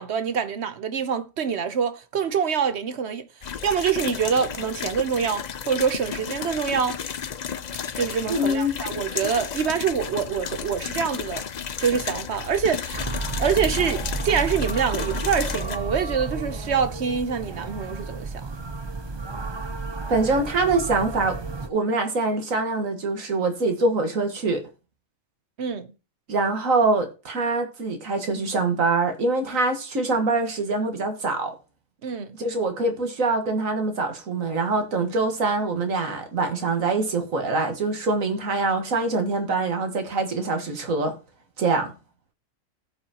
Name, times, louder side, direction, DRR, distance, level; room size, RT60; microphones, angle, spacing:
voice 1, 0.0-3.3 3.6-7.0 8.0-11.4 11.8-18.5 25.6-25.9 32.0-32.3, right 7 dB, 60° right, 1.0 m, -25 dB
sound 1, 3.4-15.8, left 7 dB, 50° left, 0.5 m, -33 dB
voice 2, 8.3-8.8 20.1-24.6 26.3-31.5 32.3-41.1 41.6-41.9, right 3 dB, 90° right, 2.0 m, -24 dB
sound 2, 12.9-21.7, right 3 dB, 25° right, 0.7 m, -32 dB
17.0 x 5.6 x 2.9 m
omnidirectional pair, 1.3 m